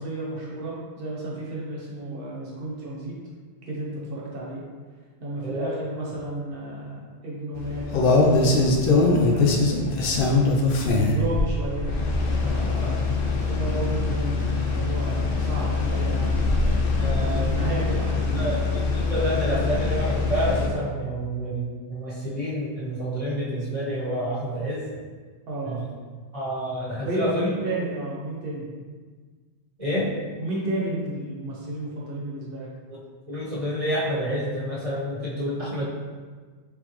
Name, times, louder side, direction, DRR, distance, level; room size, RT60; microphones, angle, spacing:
voice 1, 0.0-3.2 3.6-4.6 5.2-10.4 10.9-11.9 12.4-16.5 17.0-18.7 25.5-25.8 27.0-28.7 30.4-32.7, right 2 dB, 55° right, -5 dB, 1.2 m, -32 dB
sound 1, 7.6-20.7, left 3 dB, 60° left, 0.7 m, -23 dB
voice 2, 17.0-17.7 18.3-24.8 25.6-25.9 26.3-27.5 29.8-30.1 32.9-33.0 33.3-35.9, equal, 30° right, -8 dB, 1.3 m, -28 dB
3.9 x 3.8 x 3.1 m, 1.5 s
omnidirectional pair, 1.1 m